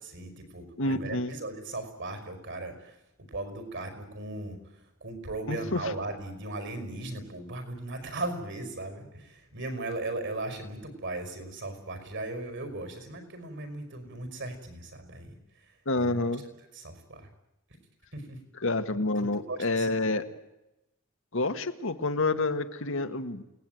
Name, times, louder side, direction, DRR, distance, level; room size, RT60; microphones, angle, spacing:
voice 1, 0.0-16.2 16.7-17.3 18.1-18.4 19.2-19.9, right 2 dB, 60° right, 8 dB, 5.2 m, -38 dB
voice 2, 0.8-1.3 5.5-5.9 15.8-16.4 18.6-20.2 21.3-23.4, left 2 dB, 65° left, 8 dB, 1.7 m, -28 dB
28.5 x 18.5 x 9.3 m, 0.93 s
head